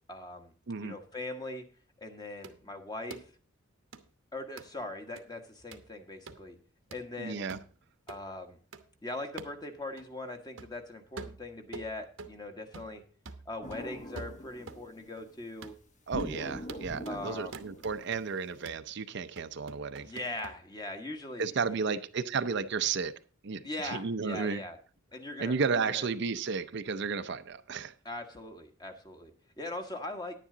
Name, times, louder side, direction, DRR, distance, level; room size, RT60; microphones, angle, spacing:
voice 1, 0.1-0.5 0.8-1.6 2.0-3.3 4.3-6.6 6.9-7.4 8.1-8.6 9.0-13.0 13.4-15.7 17.1-17.6 20.0-22.0 23.6-24.8 25.1-26.1 28.0-30.4, left 2 dB, 20° left, 1.3 m, -41 dB
sound 1, 2.4-2.6 3.1-3.3 3.9-4.0 4.6-4.7 5.2-5.3 5.7-5.9 6.3-6.4 6.9-7.1 7.5-7.7 8.1-8.2 8.7-8.8 9.4-9.6 10.0-10.1 10.6-10.8 11.2-12.4 12.7-13.0 13.3-14.9 15.2-15.3 15.6-15.8 16.2-16.4 16.7-17.2 17.5-18.2 18.7-18.9 19.4-20.6, right 4 dB, 80° right, 1.0 m, -46 dB
voice 2, 7.2-7.6 16.1-20.1 21.4-23.1 23.4-24.6 25.4-27.9, right 5 dB, 60° right, 0.6 m, -33 dB
sound 2, 13.6-15.1 16.1-18.5, equal, 40° left, 1.2 m, -42 dB
10.0 x 10.0 x 3.8 m
head